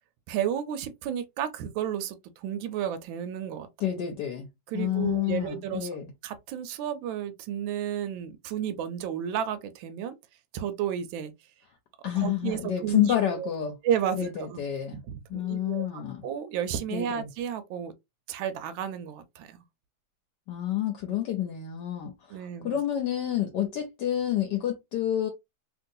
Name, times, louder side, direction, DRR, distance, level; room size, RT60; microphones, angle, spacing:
voice 1, 0.3-3.7 4.7-5.9 6.2-10.2 10.5-11.3 12.1-13.5 13.8-14.6 14.9-17.9 18.3-19.6 22.3-22.8, right 9 dB, 80° right, 1.3 m, -32 dB
voice 2, 3.8-4.5 4.7-6.1 12.0-13.8 14.2-15.0 15.3-16.2 16.9-17.3 20.5-22.1 22.6-25.3, left 11 dB, 70° left, 1.2 m, -28 dB
3.0 x 2.8 x 2.6 m
omnidirectional pair, 2.1 m